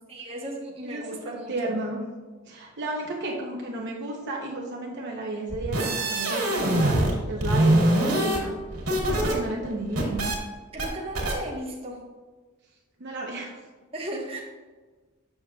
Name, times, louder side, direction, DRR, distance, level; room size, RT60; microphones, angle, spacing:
voice 1, 0.1-1.7 10.7-12.0 13.9-14.4, right 1 dB, 25° right, -2 dB, 1.2 m, -36 dB
voice 2, 0.8-2.0 2.5-8.5 8.9-10.3 13.0-13.6, right 2 dB, 55° right, -2 dB, 0.9 m, -33 dB
sound 1, 5.5-7.1 7.4-9.3 9.6-10.4 10.8-10.9 11.2-11.3, right 1 dB, 80° right, 2.1 m, -23 dB
7.6 x 6.6 x 2.4 m, 1.3 s
head